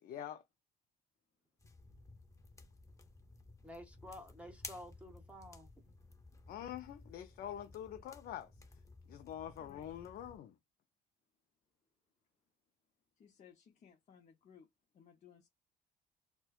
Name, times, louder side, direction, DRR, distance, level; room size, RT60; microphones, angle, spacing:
voice 1, 0.0-0.4 6.5-8.5 9.1-10.6, left 10 dB, 60° left, 0.5 m, -45 dB
sound 1, 1.6-10.4, left 3 dB, 20° left, 0.9 m, -56 dB
voice 2, 3.6-5.7, left 1 dB, 5° right, 0.9 m, -51 dB
voice 3, 9.6-9.9 13.2-15.5, left 7 dB, 45° left, 0.9 m, -62 dB
4.3 x 2.2 x 2.4 m
cardioid pair, 110°, 17 cm